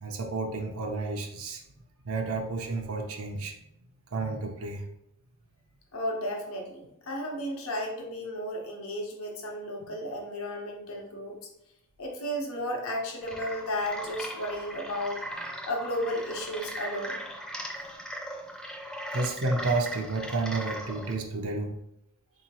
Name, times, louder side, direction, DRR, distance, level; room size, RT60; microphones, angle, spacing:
voice 1, 0.0-1.6 2.0-3.6 4.1-4.8 19.1-21.7, right 3 dB, 90° right, 2 dB, 0.6 m, -31 dB
voice 2, 5.9-11.4 12.0-15.2 15.6-17.2 18.9-19.1, equal, 90° left, 0 dB, 0.9 m, -33 dB
sound 1, 13.2-21.1, equal, 5° left, 0.4 m, -39 dB
3.9 x 2.8 x 2.9 m, 0.84 s
head